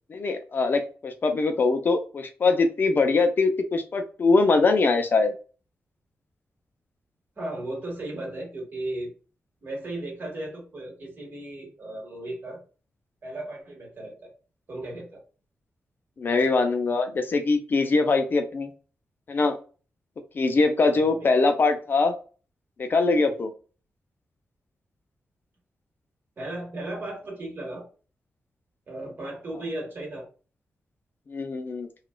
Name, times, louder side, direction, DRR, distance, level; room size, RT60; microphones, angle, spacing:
voice 1, 0.1-5.3 16.2-18.7 19.3-19.6 20.4-22.1 22.8-23.5 31.3-31.9, left 3 dB, 45° left, 7 dB, 0.4 m, -22 dB
voice 2, 7.4-9.1 9.6-12.6 13.2-14.3 14.7-15.2 20.9-21.3 26.4-27.8 28.9-30.3, right 1 dB, 45° right, -2 dB, 1.6 m, -35 dB
3.8 x 2.3 x 2.2 m, 0.36 s
wide cardioid pair, 155°, 5 cm